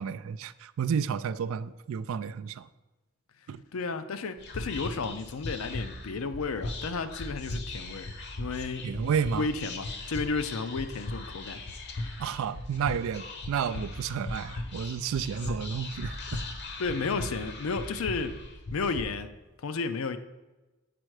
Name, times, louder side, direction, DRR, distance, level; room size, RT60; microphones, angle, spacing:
voice 1, 0.0-2.7 3.5-3.6 8.8-9.5 12.2-16.4, right 7 dB, 70° right, 0.3 m, -31 dB
voice 2, 3.7-8.1 8.4-8.9 9.3-11.6 16.8-18.4 18.7-19.3 19.6-20.2, left 4 dB, 75° left, 0.5 m, -32 dB
Whispering, 4.4-19.0, left 2 dB, 55° left, 0.9 m, -38 dB
7.7 x 4.3 x 4.7 m
head